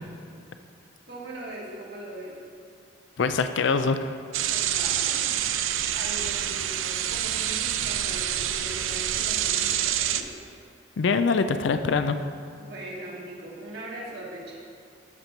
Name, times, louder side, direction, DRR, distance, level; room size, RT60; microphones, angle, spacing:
voice 1, 1.1-2.4 4.5-10.3 12.6-14.6, right 1 dB, 55° right, -4 dB, 1.4 m, -40 dB
voice 2, 3.2-4.1 11.0-12.2, left 4 dB, 70° left, 9 dB, 0.4 m, -24 dB
sound 1, 4.3-10.2, right 10 dB, 85° right, 0.5 m, -27 dB
13.0 x 4.4 x 5.3 m, 2.3 s
head